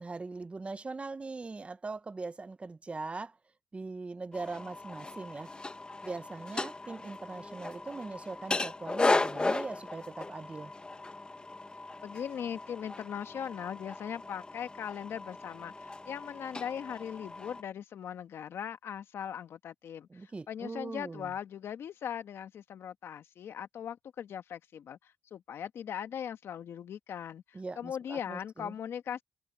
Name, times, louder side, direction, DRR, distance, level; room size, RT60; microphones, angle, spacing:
voice 1, 0.0-3.4 3.7-5.5 6.0-10.7 20.1-21.3 27.5-28.7, right 3 dB, 25° right, 1.0 m, -41 dB
sound 1, 4.3-17.6, left 2 dB, 20° left, 1.9 m, -36 dB
voice 2, 12.0-29.2, left 8 dB, 70° left, 1.5 m, -39 dB
cardioid pair, 85°, 4 cm